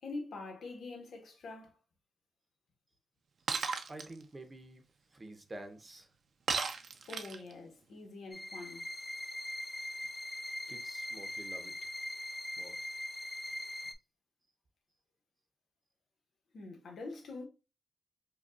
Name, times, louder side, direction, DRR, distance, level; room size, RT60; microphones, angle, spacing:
voice 1, 0.0-1.8 7.1-8.9 16.5-17.4, left 3 dB, 85° left, 1.1 m, -45 dB
Shatter, 3.5-4.1 6.5-7.5, right 5 dB, 70° right, 0.5 m, -34 dB
voice 2, 3.9-4.8 5.1-6.1 10.7-11.9 12.6-12.9, right 2 dB, 30° right, 0.7 m, -49 dB
sound 1, 8.3-13.9, left 1 dB, 25° left, 0.4 m, -41 dB
5.0 x 2.3 x 2.3 m
wide cardioid pair, 110°, 0 cm